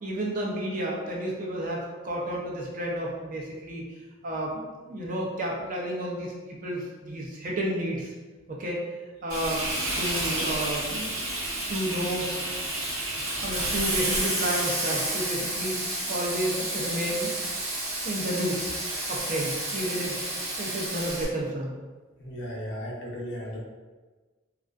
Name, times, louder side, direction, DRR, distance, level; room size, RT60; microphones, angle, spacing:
voice 1, 0.0-3.8 4.2-8.1 8.5-8.8 9.2-9.7 10.0-11.2 11.7-12.3 13.4-17.3 18.0-18.6 19.1-20.2 20.6-21.8, right 1 dB, 40° right, -3 dB, 0.4 m, -31 dB
Frying (food), 9.3-21.2, right 1 dB, 85° right, 0.7 m, -30 dB
voice 2, 22.2-23.6, equal, 60° left, -3 dB, 0.5 m, -35 dB
2.3 x 2.3 x 2.3 m, 1.3 s
head